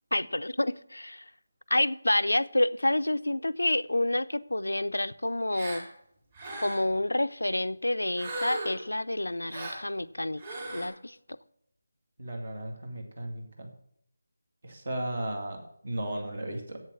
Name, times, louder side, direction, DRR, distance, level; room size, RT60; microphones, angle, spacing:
voice 1, 0.1-1.2 1.7-5.9 6.6-11.2, left 1 dB, 85° left, 0.5 m, -28 dB
Gasp, 5.5-5.9 6.3-6.9 8.2-8.9 9.5-9.8 10.4-10.9, right 1 dB, 40° right, 3.3 m, -37 dB
voice 2, 12.2-13.7 14.6-16.8, right 1 dB, 55° right, 2.4 m, -35 dB
8.0 x 7.2 x 7.1 m
figure-of-eight pair, 160°, 0 cm